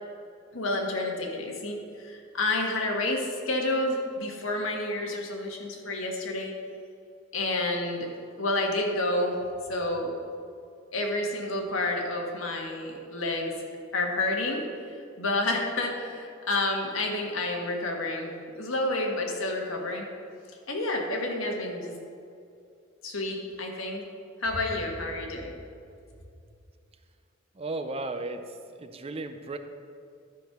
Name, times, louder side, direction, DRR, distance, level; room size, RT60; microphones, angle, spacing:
voice 1, 0.5-6.5 7.3-8.1 8.4-9.4 9.7-10.1 10.9-13.6 13.9-14.6 15.2-18.3 18.5-20.1 20.7-21.9 23.0-24.0 24.4-25.5, left 2 dB, 90° left, 1 dB, 1.6 m, -29 dB
voice 2, 27.6-28.4 28.8-29.6, right 2 dB, 30° right, 7 dB, 0.5 m, -34 dB
12.0 x 5.3 x 5.9 m, 2.4 s
head